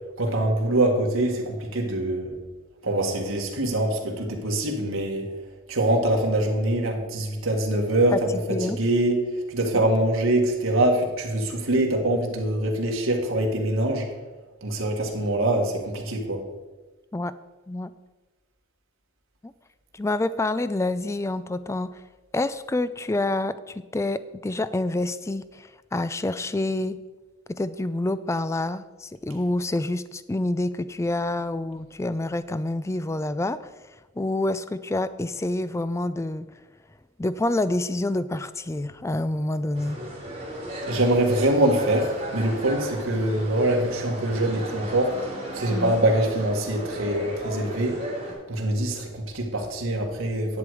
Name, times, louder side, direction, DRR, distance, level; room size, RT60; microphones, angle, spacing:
voice 1, 0.2-2.4 2.8-5.3 5.7-14.1 14.6-16.4 40.9-45.2 45.5-48.0 48.5-50.6, right 1 dB, 80° right, 1 dB, 1.9 m, -24 dB
voice 2, 19.9-21.9 22.3-27.0 27.5-33.7 34.2-36.5 37.2-40.0 45.7-46.0, left 2 dB, 15° left, 14 dB, 0.3 m, -27 dB
sound 1, 39.7-48.3, right 1 dB, 30° right, 3.6 m, -35 dB
10.5 x 7.9 x 4.9 m, 1.2 s
head